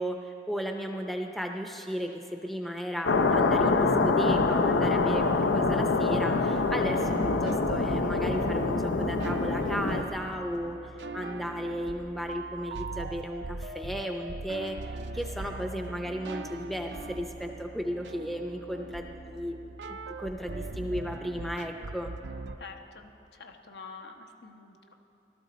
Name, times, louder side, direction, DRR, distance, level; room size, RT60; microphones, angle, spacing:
voice 1, 0.0-19.7 20.2-22.1, equal, ahead, 3 dB, 0.5 m, -35 dB
sound 1, 3.1-10.0, left 3 dB, 90° left, 0.6 m, -25 dB
sound 2, 6.9-22.6, right 3 dB, 75° right, 0.5 m, -40 dB
voice 2, 22.6-25.0, left 4 dB, 70° left, 3 dB, 1.0 m, -47 dB
18.0 x 13.0 x 4.2 m, 3.0 s
head